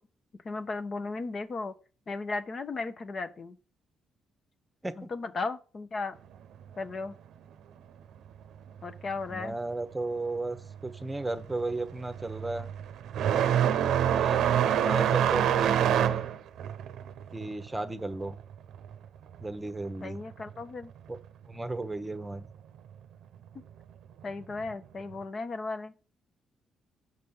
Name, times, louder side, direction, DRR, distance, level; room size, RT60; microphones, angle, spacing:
voice 1, 0.4-1.7 2.1-3.6 5.0-6.1 6.8-7.2 8.8-9.5 20.0-20.9 24.2-25.9, left 3 dB, 40° left, 0.8 m, -35 dB
voice 2, 9.3-10.6 10.8-12.7 14.0-16.2 17.3-18.4 19.4-20.2 21.1-21.2 21.5-22.5, right 2 dB, 15° right, 0.9 m, -35 dB
sound 1, 10.6-10.9 11.2-19.5 19.8-20.8 21.8-21.9 22.7-22.8 24.6-24.7, right 9 dB, 80° right, 0.7 m, -26 dB
6.6 x 5.2 x 7.0 m
cardioid pair, 90°, 0 cm